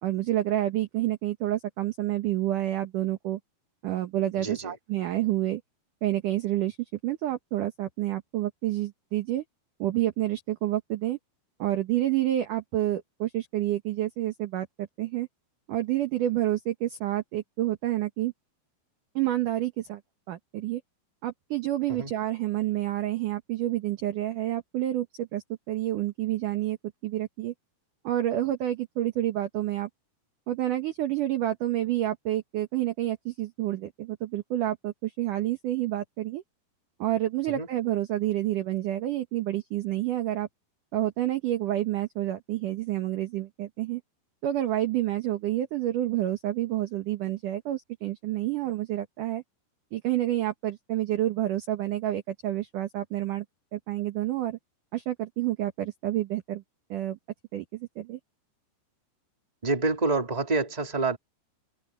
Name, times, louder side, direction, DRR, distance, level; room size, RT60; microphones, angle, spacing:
voice 1, 0.0-3.4 3.8-5.6 6.0-6.8 7.0-9.4 9.8-11.2 11.6-15.3 15.7-18.3 19.2-20.0 20.3-20.8 21.2-26.8 27.0-27.5 28.0-29.9 30.5-36.4 37.0-40.5 40.9-44.0 44.4-49.4 49.9-53.5 53.7-54.6 54.9-56.6 56.9-57.2 57.5-58.2, right 14 dB, 65° right, 2.2 m, -29 dB
voice 2, 4.4-4.7 22.0-22.1 37.6-37.7 59.6-61.2, right 3 dB, 10° right, 2.6 m, -27 dB
omnidirectional pair, 5.0 m